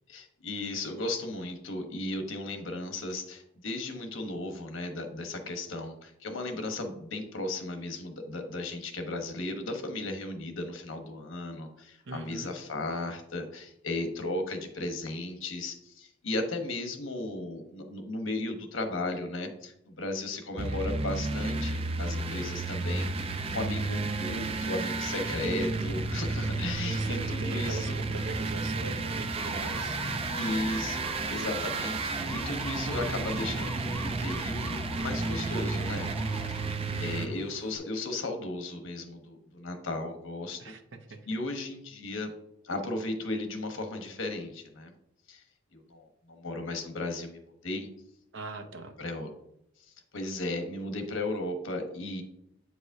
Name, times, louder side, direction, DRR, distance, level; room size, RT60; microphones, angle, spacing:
voice 1, 0.1-28.0 30.4-36.1 36.5-36.6 37.0-40.7 41.3-42.3 42.6-44.9 45.3-45.4 45.7-47.9 49.0-49.3 50.1-52.2, left 2 dB, 90° left, 5 dB, 1.0 m, -35 dB
voice 2, 12.1-12.5 26.8-30.0 36.9-37.4 40.6-40.8 41.1-41.2 48.3-48.9, right 3 dB, 70° right, 6 dB, 0.8 m, -41 dB
sound 1, 20.6-37.3, right 3 dB, 30° right, 0.3 m, -32 dB
sound 2, 29.3-37.8, left 1 dB, 10° left, 0.9 m, -43 dB
8.1 x 4.8 x 2.7 m, 0.78 s
head